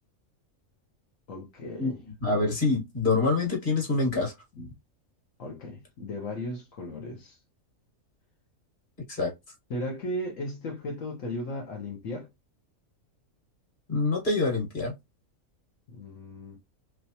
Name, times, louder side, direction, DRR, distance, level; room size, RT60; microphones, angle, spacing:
voice 1, 1.3-2.0 4.6-4.7 5.4-7.4 9.7-12.3 15.9-16.6, left 1 dB, 70° left, 1.3 m, -36 dB
voice 2, 2.2-4.3 9.1-9.3 13.9-14.9, left 3 dB, 40° left, 1.6 m, -25 dB
3.3 x 3.2 x 2.8 m
omnidirectional pair, 1.4 m